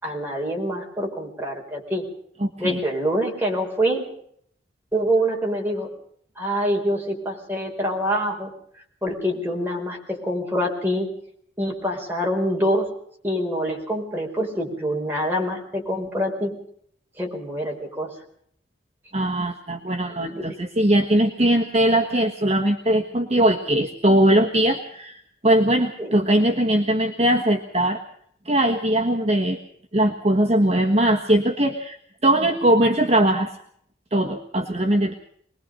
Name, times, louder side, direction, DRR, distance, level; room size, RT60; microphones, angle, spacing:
voice 1, 0.0-2.0 2.6-4.1 4.9-5.9 6.4-8.5 9.0-11.1 11.6-12.9 13.2-16.6 17.2-18.2 20.3-20.5 26.0-26.2, equal, 10° right, -1 dB, 5.0 m, -25 dB
voice 2, 2.4-2.8 19.1-28.0 28.4-29.6 29.9-32.0 32.2-33.5 34.1-35.1, right 1 dB, 35° right, 3 dB, 1.4 m, -20 dB
24.0 x 20.5 x 5.3 m, 0.65 s
head